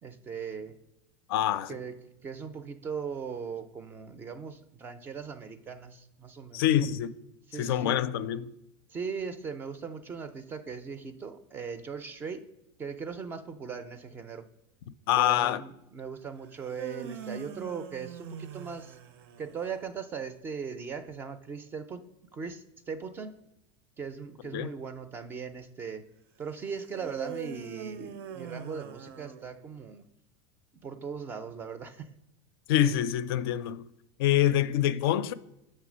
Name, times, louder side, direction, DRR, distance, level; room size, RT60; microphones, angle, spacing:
voice 1, 0.0-0.8 1.7-1.9 2.2-6.7 7.5-8.0 8.9-12.4 12.8-14.4 15.2-19.0 19.4-22.0 22.3-23.4 24.0-26.1 26.4-30.0 30.8-32.1, right 6 dB, 15° right, 0.4 m, -39 dB
voice 2, 1.3-1.8 6.5-7.1 7.5-8.5 15.1-15.6 24.5-24.7 32.7-33.8 34.2-35.3, left 12 dB, 65° left, 0.4 m, -26 dB
sound 1, 16.5-19.8 26.9-29.9, right 7 dB, 70° right, 0.6 m, -42 dB
6.8 x 3.2 x 6.1 m
supercardioid pair, 170°, 13 cm